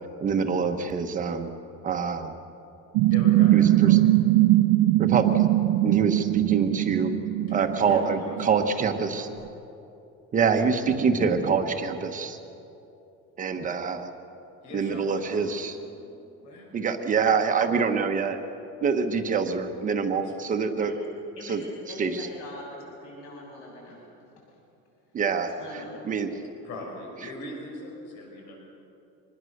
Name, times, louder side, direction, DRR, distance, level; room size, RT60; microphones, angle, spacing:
voice 1, 0.2-1.5 1.8-2.3 3.5-4.0 5.0-5.5 5.8-7.1 7.5-9.3 10.3-12.4 13.4-14.1 14.7-15.8 16.7-18.4 18.8-20.9 21.5-21.6 22.0-22.1 25.1-25.5 26.0-26.3, right 5 dB, 25° right, 6 dB, 1.1 m, -25 dB
sound 1, 2.9-9.0, right 16 dB, 80° right, 0.7 m, -21 dB
voice 2, 3.0-4.2 7.5-9.3 13.7-13.8 14.6-16.0 16.4-16.7 20.1-20.7 26.6-28.6, left 1 dB, 70° left, 0 dB, 6.1 m, -41 dB
voice 3, 21.9-24.0 24.4-24.5 25.5-26.0, left 1 dB, 50° left, -3 dB, 6.8 m, -42 dB
25.0 x 20.5 x 6.6 m, 2.8 s
cardioid pair, 175°, 30 cm